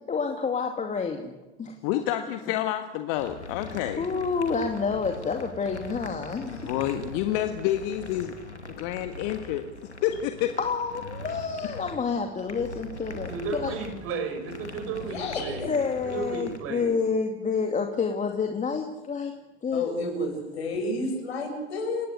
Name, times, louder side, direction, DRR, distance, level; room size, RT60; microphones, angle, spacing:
voice 1, 0.1-1.3 1.6-2.0 4.0-6.7 10.6-13.7 15.7-19.3 19.6-19.8, left 5 dB, 20° left, 4 dB, 2.4 m, -29 dB
voice 2, 1.8-4.0 6.6-8.3 8.7-9.6 10.0-10.5, left 12 dB, 50° left, 7 dB, 1.6 m, -28 dB
sound 1, 3.2-16.6, left 2 dB, 85° left, 2.7 m, -42 dB
voice 3, 13.3-15.7 16.0-16.9, right 4 dB, 45° right, 6 dB, 6.0 m, -33 dB
voice 4, 15.0-15.7 19.7-22.1, left 2 dB, 70° left, 3 dB, 7.6 m, -31 dB
28.5 x 17.0 x 8.2 m, 1.1 s
figure-of-eight pair, 75°, 33 cm